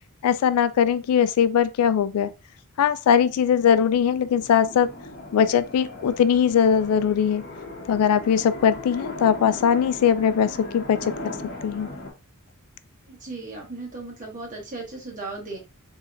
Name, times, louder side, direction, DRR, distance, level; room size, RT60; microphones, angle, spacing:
voice 1, 0.2-2.3 2.8-4.9 5.3-7.4 7.9-11.0 11.6-11.9, left 8 dB, 80° left, 0.3 m, -20 dB
sound 1, 3.2-12.1, left 2 dB, 45° left, 0.9 m, -38 dB
voice 2, 13.1-15.6, right 3 dB, 35° right, 1.2 m, -36 dB
4.1 x 2.8 x 2.5 m
head